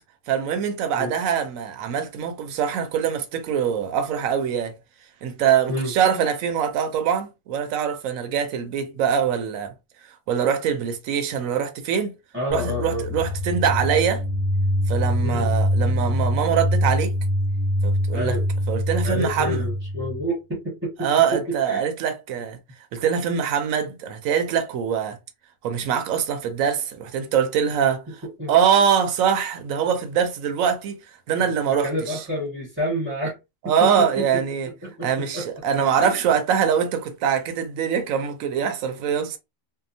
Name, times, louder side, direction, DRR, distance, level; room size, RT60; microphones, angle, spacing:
voice 1, 0.3-4.8 5.2-9.7 10.3-12.1 12.5-14.2 14.9-17.1 17.8-18.4 18.7-19.6 21.0-22.6 22.9-25.2 25.6-28.2 28.5-31.0 31.3-32.2 33.6-34.7 35.0-39.4, right 8 dB, 75° right, 0.9 m, -23 dB
voice 2, 12.3-13.1 15.2-15.5 18.1-18.4 19.0-21.9 28.4-28.5 31.7-33.4 33.6-34.3 34.8-35.5 36.0-36.1, equal, 10° right, 0.7 m, -29 dB
sound 1, 12.5-20.2, equal, 55° left, 0.7 m, -24 dB
2.8 x 2.1 x 2.5 m
omnidirectional pair, 1.5 m